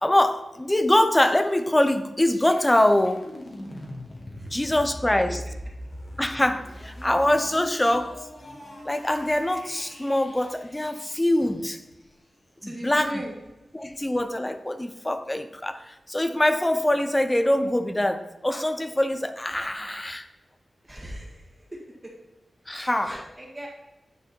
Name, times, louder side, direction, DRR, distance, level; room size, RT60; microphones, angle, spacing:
voice 1, 0.0-3.3 4.5-5.4 6.2-8.2 8.9-11.8 12.6-13.2 13.7-20.3 22.7-23.3, left 1 dB, 15° left, 10 dB, 0.5 m, -24 dB
sound 1, 2.2-12.0, left 1 dB, 35° left, 1.5 m, -41 dB
voice 2, 12.6-13.3 20.9-21.5 21.7-22.1 22.7-23.7, right 1 dB, 15° right, -3 dB, 1.9 m, -38 dB
9.9 x 4.9 x 4.4 m, 1.1 s
wide cardioid pair, 145°, 0 cm